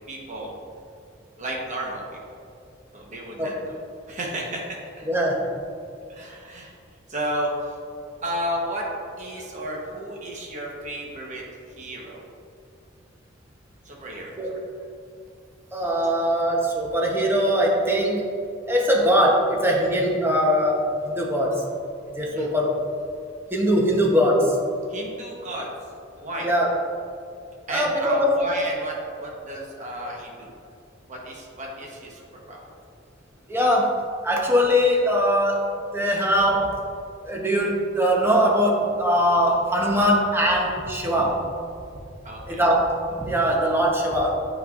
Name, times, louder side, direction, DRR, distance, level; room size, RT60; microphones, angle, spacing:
voice 1, 0.1-0.5 1.4-2.0 2.9-3.8 4.1-5.1 6.1-6.7 7.1-7.8 8.2-8.8 9.2-11.4 11.8-12.3 13.8-14.6 22.3-22.5 24.9-25.7 26.2-26.5 27.7-30.5 31.1-32.6 42.2-42.6, right 1 dB, 40° right, -2 dB, 1.0 m, -32 dB
voice 2, 5.0-5.5 14.4-14.5 15.7-18.2 18.7-21.6 22.1-22.8 23.5-24.6 26.4-26.7 27.7-28.4 33.5-36.8 37.2-41.5 42.5-44.3, equal, 10° right, -2 dB, 0.9 m, -21 dB
8.5 x 5.4 x 2.5 m, 2.4 s
head